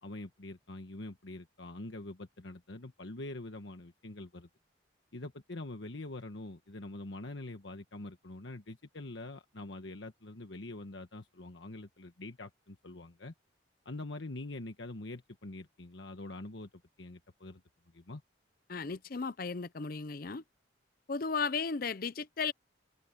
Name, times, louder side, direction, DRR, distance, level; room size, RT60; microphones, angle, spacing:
voice 1, 0.0-4.5 5.1-13.3 13.8-16.7 17.0-17.6 17.9-18.2, left 2 dB, 70° left, 1.3 m, -44 dB
voice 2, 18.7-20.4 21.1-22.5, left 5 dB, 50° left, 0.6 m, -35 dB
head